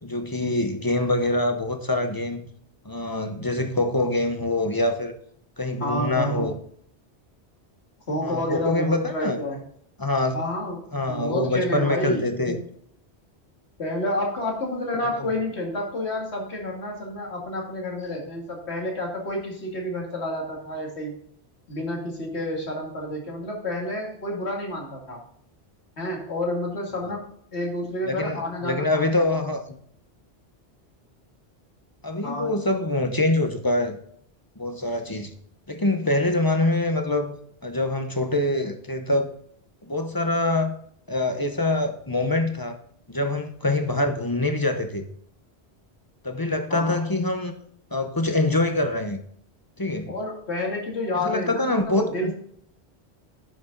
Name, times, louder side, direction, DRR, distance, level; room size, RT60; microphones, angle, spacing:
voice 1, 0.0-2.4 2.8-5.1 5.6-6.5 8.2-9.4 10.0-10.4 10.9-12.6 15.1-15.2 28.1-29.6 32.0-34.0 34.6-35.3 35.7-37.4 37.6-39.3 39.9-40.7 41.1-42.8 43.1-45.0 46.2-47.5 47.9-49.2 49.8-50.1 51.2-52.3, left 2 dB, 20° left, 6 dB, 0.8 m, -24 dB
voice 2, 5.8-6.5 8.1-9.6 10.3-12.7 13.8-21.2 21.7-25.2 26.0-29.1 32.2-32.5 46.7-47.0 50.1-52.3, left 1 dB, 85° left, 0 dB, 2.6 m, -29 dB
10.0 x 6.2 x 3.9 m, 0.65 s
omnidirectional pair, 1.1 m